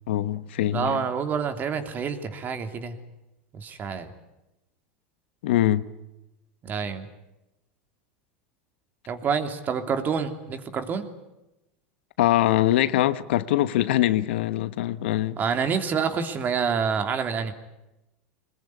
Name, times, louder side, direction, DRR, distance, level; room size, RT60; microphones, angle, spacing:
voice 1, 0.1-1.0 5.4-5.9 12.2-15.4, left 13 dB, 80° left, 1.2 m, -23 dB
voice 2, 0.7-3.0 3.5-4.1 6.6-7.1 9.1-11.1 15.4-17.5, right 6 dB, 30° right, 3.1 m, -27 dB
23.0 x 20.5 x 9.7 m
supercardioid pair, 125°, 6 cm